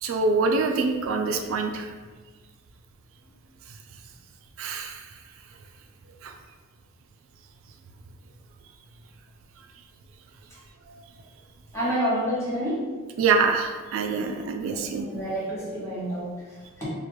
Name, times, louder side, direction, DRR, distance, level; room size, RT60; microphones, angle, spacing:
voice 1, 0.0-1.9 4.6-5.0 6.2-6.3 13.2-15.1, right 4 dB, 90° right, 4 dB, 0.3 m, -25 dB
voice 2, 11.7-12.8 14.1-14.3 14.7-16.8, equal, 15° left, -10 dB, 1.2 m, -29 dB
2.9 x 2.4 x 3.1 m, 1.4 s
head